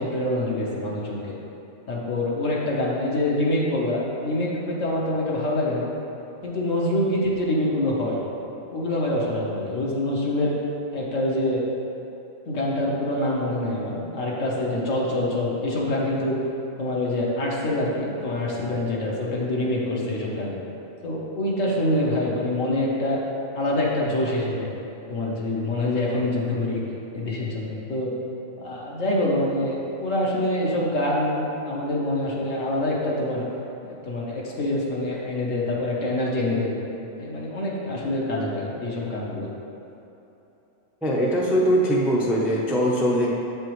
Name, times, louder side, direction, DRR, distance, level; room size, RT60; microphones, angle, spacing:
voice 1, 0.0-1.3 1.9-5.9 6.4-8.2 8.7-10.6 10.9-11.6 12.5-16.4 16.8-20.6 21.0-23.2 23.5-24.7 25.1-26.8 27.1-28.1 28.6-33.4 34.0-36.7 37.2-39.5, left 1 dB, 70° left, -4 dB, 1.4 m, -25 dB
voice 2, 41.0-43.3, equal, ahead, -4 dB, 0.4 m, -21 dB
7.7 x 5.3 x 3.1 m, 3.0 s
omnidirectional pair, 1.4 m